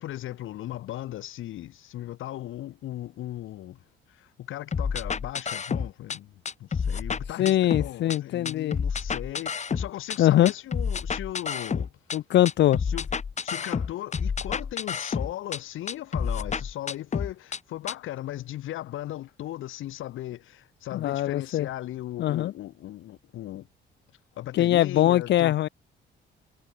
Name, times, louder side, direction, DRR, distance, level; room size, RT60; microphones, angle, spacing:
voice 1, 0.0-11.9 12.8-13.1 13.4-23.7 24.3-25.5, left 14 dB, 80° left, 7.9 m, -37 dB
sound 1, 4.7-6.2 6.5-8.2 8.5-10.2 10.5-12.2 12.5-15.6 15.9-17.6 17.9-18.0, left 6 dB, 35° left, 1.4 m, -29 dB
voice 2, 7.4-8.8 10.2-10.5 12.1-12.8 20.9-21.7 22.2-22.5 24.5-25.7, left 13 dB, 60° left, 0.5 m, -22 dB
cardioid pair, 85°, 20 cm